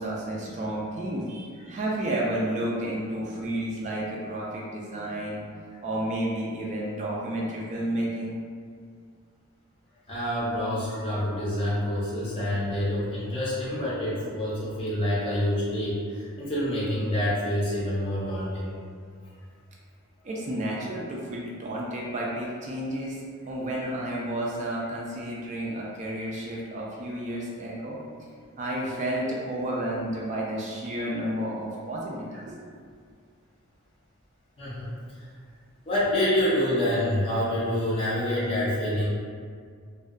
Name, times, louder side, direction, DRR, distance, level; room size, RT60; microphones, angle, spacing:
voice 1, 0.0-5.6 5.8-8.3 20.2-28.0 28.6-32.6, right 1 dB, 35° right, -4 dB, 0.3 m, -31 dB
voice 2, 10.1-18.7 32.3-32.4 34.6-34.9 35.2-35.3 35.9-39.1, left 1 dB, 25° left, -8 dB, 0.5 m, -27 dB
2.6 x 2.2 x 2.4 m, 2.1 s
head